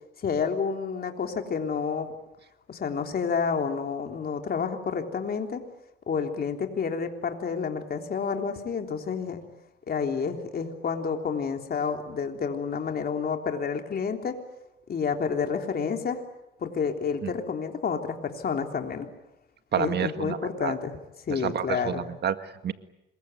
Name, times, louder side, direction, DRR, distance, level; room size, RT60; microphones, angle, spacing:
voice 1, 0.2-2.1 2.7-5.6 6.1-9.4 9.9-14.4 14.9-16.2 16.6-19.1 19.8-20.9 21.3-22.0, left 6 dB, 50° left, 4 dB, 3.6 m, -29 dB
voice 2, 19.7-20.7 21.3-22.7, right 9 dB, 60° right, 10 dB, 1.8 m, -29 dB
26.5 x 22.5 x 9.3 m, 0.91 s
cardioid pair, 90°, 20 cm